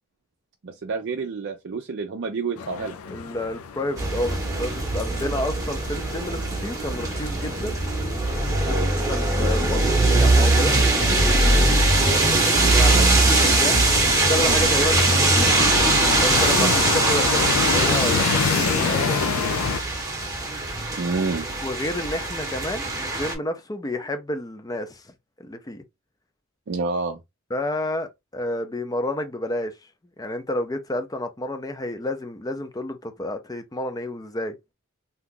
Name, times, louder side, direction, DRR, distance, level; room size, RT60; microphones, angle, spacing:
voice 1, 0.6-3.0 8.7-8.9 11.4-11.6 14.5-14.7 16.6-16.7 21.0-21.5 26.7-27.2, right 4 dB, 55° right, 0.4 m, -28 dB
sound 1, 2.6-19.8, left 6 dB, 85° left, 0.4 m, -29 dB
voice 2, 3.1-7.8 8.6-8.8 9.1-10.8 11.9-13.8 14.2-15.6 16.2-19.6 21.6-25.1 25.4-25.8 27.5-29.7 30.2-34.5, left 1 dB, 15° left, 0.5 m, -30 dB
sound 2, 4.0-23.3, right 2 dB, 15° right, 0.9 m, -21 dB
2.8 x 2.4 x 3.6 m
head